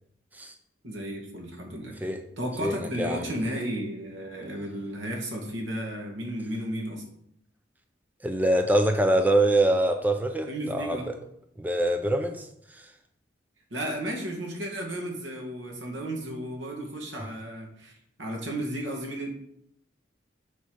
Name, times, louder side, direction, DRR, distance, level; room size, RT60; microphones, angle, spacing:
voice 1, 0.8-2.1 2.4-7.0 10.5-11.1 13.7-19.3, right 1 dB, 80° right, 2.2 m, -34 dB
voice 2, 2.6-3.3 8.2-11.1 11.6-12.9, right 1 dB, 10° right, 0.5 m, -25 dB
8.3 x 4.6 x 6.2 m
head